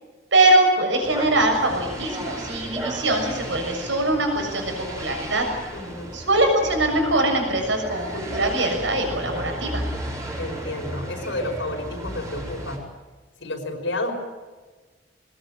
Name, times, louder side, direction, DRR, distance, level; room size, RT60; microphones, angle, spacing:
voice 1, 0.3-5.5 6.1-9.8, right 2 dB, 85° right, 3 dB, 6.8 m, -22 dB
sound 1, 1.0-12.8, right 1 dB, 15° right, 4.7 m, -34 dB
voice 2, 5.7-6.1 10.4-12.8 13.4-14.1, left 1 dB, 90° left, 2 dB, 5.5 m, -30 dB
21.5 x 20.0 x 8.9 m, 1.3 s
head